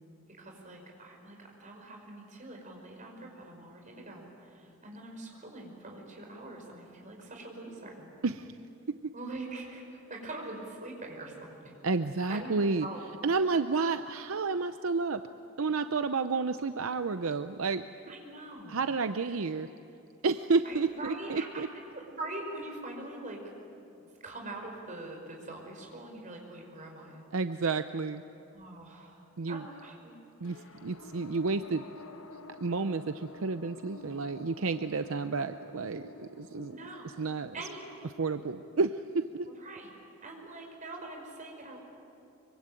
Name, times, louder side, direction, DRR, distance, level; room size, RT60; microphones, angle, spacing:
voice 1, 0.4-8.1 9.1-11.5 12.3-13.0 18.1-18.9 20.6-21.6 21.9-23.4 24.2-27.3 28.5-30.1 30.5-30.7 36.7-37.1 37.5-38.0 39.6-39.9 40.2-41.8, right 2 dB, 35° right, 1 dB, 5.5 m, -43 dB
voice 2, 8.2-8.6 11.8-12.9 13.2-15.2 15.6-17.8 18.7-19.7 20.2-21.7 27.3-28.2 29.4-29.6 30.4-30.6 30.8-31.8 32.6-36.7 37.2-37.5 38.2-39.0 39.3-39.5, right 4 dB, 70° right, 10 dB, 0.6 m, -30 dB
sound 1, 30.4-41.1, left 1 dB, 70° left, 1.2 m, -51 dB
25.0 x 24.0 x 9.1 m, 2.7 s
head